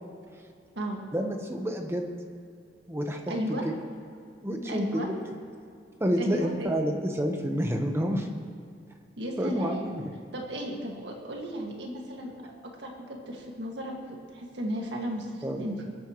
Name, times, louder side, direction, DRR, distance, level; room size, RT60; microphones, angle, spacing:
voice 1, 1.1-2.1 2.9-3.7 4.4-5.1 6.0-8.3 9.4-10.0 15.4-15.6, equal, 15° right, 3 dB, 1.1 m, -29 dB
voice 2, 3.3-3.7 4.6-5.1 6.2-6.7 9.2-10.0 10.3-12.3 12.6-15.9, equal, 70° right, 0 dB, 1.9 m, -34 dB
23.0 x 9.0 x 3.1 m, 2.4 s
head